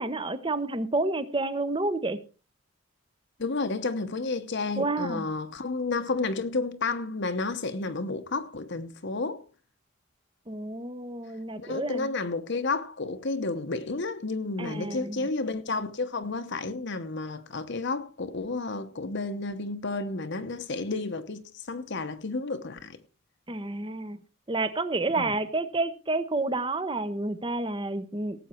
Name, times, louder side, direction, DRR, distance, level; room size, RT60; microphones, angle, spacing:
voice 1, 0.0-2.2 4.8-5.3 10.5-12.1 14.6-15.3 23.5-24.2 24.5-28.5, right 2 dB, 25° right, 0.9 m, -30 dB
voice 2, 3.4-9.4 11.6-23.0 25.2-25.3, left 3 dB, 55° left, 0.9 m, -31 dB
18.0 x 8.2 x 4.4 m
head